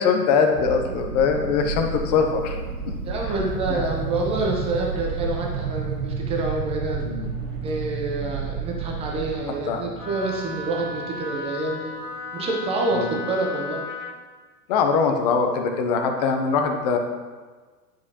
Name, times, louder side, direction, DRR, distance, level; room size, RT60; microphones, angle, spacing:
voice 1, 0.0-2.9 3.7-3.8 7.0-7.3 9.7-9.8 12.9-13.2 14.7-17.0, left 5 dB, 25° left, 4 dB, 0.5 m, -22 dB
sound 1, 0.6-12.0, right 4 dB, 70° right, 1.2 m, -33 dB
sound 2, 0.8-9.3, right 5 dB, 30° right, 1.3 m, -34 dB
voice 2, 3.0-7.1 7.6-11.9 12.3-13.8, right 2 dB, 10° right, 0 dB, 0.6 m, -27 dB
Wind instrument woodwind instrument, 10.0-14.2, left 3 dB, 70° left, 1.3 m, -35 dB
9.2 x 5.1 x 2.8 m, 1.4 s
hypercardioid pair, 140°, 49 cm